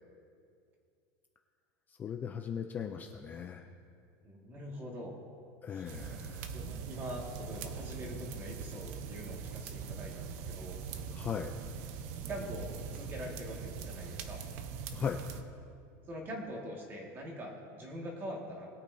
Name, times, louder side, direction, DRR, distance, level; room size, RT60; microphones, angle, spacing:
voice 1, 1.9-3.7 5.6-6.5 11.1-11.5 14.9-15.2, left 7 dB, 20° left, 4 dB, 0.4 m, -38 dB
voice 2, 4.2-5.2 5.7-5.9 6.5-10.8 12.3-14.4 16.1-18.7, equal, 25° right, -1 dB, 1.9 m, -43 dB
sound 1, 5.9-15.4, right 6 dB, 55° right, 0.8 m, -42 dB
21.0 x 8.5 x 2.7 m, 2.4 s
supercardioid pair, 170°, 9 cm